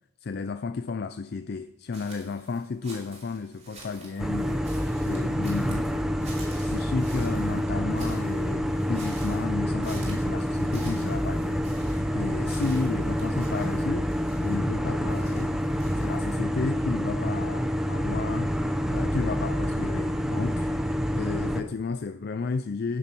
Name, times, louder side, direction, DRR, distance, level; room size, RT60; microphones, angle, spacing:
voice 1, 0.2-15.6 16.0-23.0, left 4 dB, 45° left, 0.4 m, -33 dB
sound 1, 1.9-16.3, right 3 dB, 30° right, 4.3 m, -49 dB
sound 2, 4.2-21.6, equal, ahead, 0.7 m, -27 dB
9.9 x 9.7 x 7.0 m
head